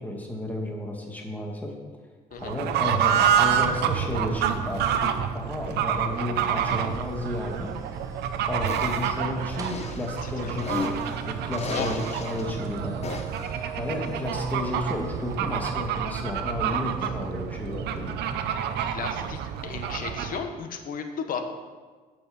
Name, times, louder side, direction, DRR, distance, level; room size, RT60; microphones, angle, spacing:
voice 1, 0.0-1.7 2.4-7.7 8.5-11.0 11.3-12.9 13.8-18.2, left 1 dB, 10° left, 0 dB, 2.1 m, -32 dB
Fowl / Bird, 2.4-20.4, right 9 dB, 75° right, 0.8 m, -28 dB
sound 1, 6.7-15.4, right 3 dB, 20° right, 1.1 m, -45 dB
sound 2, 8.7-9.1 9.5-11.1 11.5-12.4 13.0-13.5, left 4 dB, 40° left, 1.1 m, -35 dB
voice 2, 10.2-10.8 11.6-12.0 18.9-21.4, left 6 dB, 55° left, 6 dB, 1.3 m, -35 dB
8.7 x 6.2 x 7.2 m, 1.4 s
cardioid pair, 110°, 17 cm